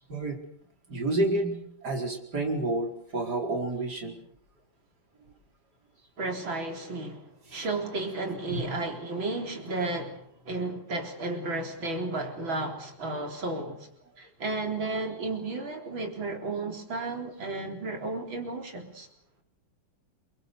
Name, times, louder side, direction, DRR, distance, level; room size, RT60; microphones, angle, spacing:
voice 1, 0.9-4.2 7.5-7.7 8.5-8.6, right 2 dB, 55° right, 5.2 m, -30 dB
voice 2, 6.2-13.9 14.2-19.1, right 2 dB, 90° right, 4.8 m, -33 dB
27.5 x 24.0 x 6.8 m
omnidirectional pair, 2.1 m